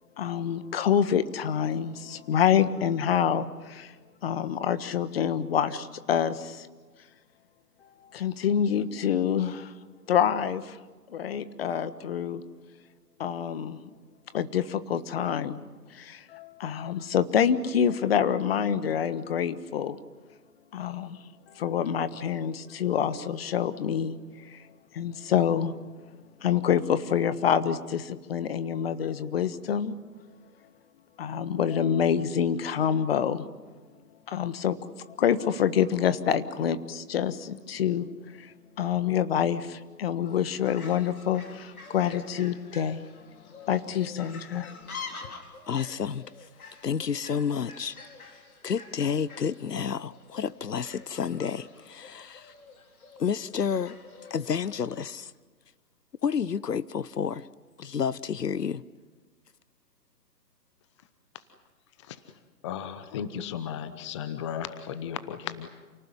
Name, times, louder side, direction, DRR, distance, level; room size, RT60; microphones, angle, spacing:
voice 1, 0.2-3.9 4.2-6.7 8.1-9.7 10.1-10.8 11.1-12.4 13.2-13.8 14.3-15.6 15.9-20.0 20.7-21.2 21.5-24.2 24.4-24.6 24.9-25.7 26.4-29.9 31.2-33.5 34.3-34.8 35.2-38.1 38.4-43.1 43.7-44.8, left 8 dB, 40° left, 1.5 m, -27 dB
Fowl, 40.3-55.1, left 4 dB, 60° left, 4.4 m, -47 dB
voice 2, 45.7-46.3 46.8-48.0 48.6-52.5 53.2-54.0 54.3-55.3 56.2-57.5 57.8-58.8, left 7 dB, 80° left, 0.9 m, -30 dB
voice 3, 62.6-65.7, left 9 dB, 20° left, 0.8 m, -35 dB
29.0 x 18.5 x 9.9 m
figure-of-eight pair, 140°, 48 cm